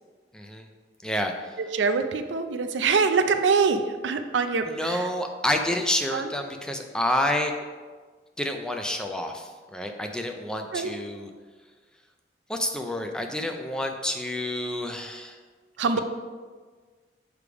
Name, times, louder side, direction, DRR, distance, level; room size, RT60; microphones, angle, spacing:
voice 1, 0.3-0.7 1.0-1.3 4.7-7.5 8.4-11.3 12.5-15.4, left 1 dB, 5° left, 3 dB, 0.4 m, -29 dB
voice 2, 1.6-5.1 6.1-6.3 10.7-10.9 15.8-16.0, right 5 dB, 85° right, 8 dB, 0.5 m, -24 dB
6.9 x 3.3 x 4.8 m, 1.5 s
head